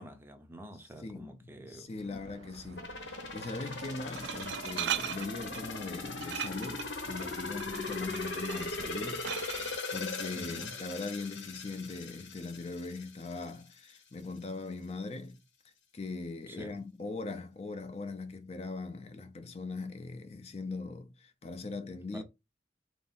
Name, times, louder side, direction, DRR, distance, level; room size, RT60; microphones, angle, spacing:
voice 1, 0.0-1.9 10.3-10.8 16.5-16.8 22.1-22.2, equal, 15° right, 0.5 m, -47 dB
voice 2, 1.0-15.4 15.9-22.2, left 3 dB, 35° left, 0.5 m, -40 dB
Glass, 2.0-9.8, right 10 dB, 75° right, 0.3 m, -41 dB
sound 1, 2.8-13.5 13.9-14.0, left 3 dB, 90° left, 1.1 m, -39 dB
3.5 x 2.6 x 4.0 m
head